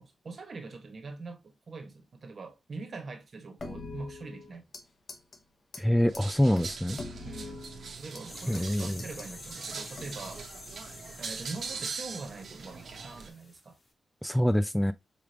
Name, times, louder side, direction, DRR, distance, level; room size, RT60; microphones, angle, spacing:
voice 1, 0.0-4.6 7.2-7.7 8.0-10.5 11.2-13.8, right 3 dB, 55° right, 1.4 m, -43 dB
sound 1, 3.6-4.8 5.1-5.4 5.7-5.8 6.1-6.2 6.6-8.2 8.5-9.3 9.9-10.4, left 3 dB, 55° left, 1.1 m, -43 dB
voice 2, 5.8-7.0 8.5-9.0 14.2-14.9, equal, 5° left, 0.3 m, -25 dB
sound 2, 6.1-13.3, right 5 dB, 70° right, 1.1 m, -41 dB
sound 3, 8.0-13.6 13.9-14.0, left 2 dB, 40° left, 1.4 m, -48 dB
5.1 x 3.4 x 2.8 m
cardioid pair, 85°, 0 cm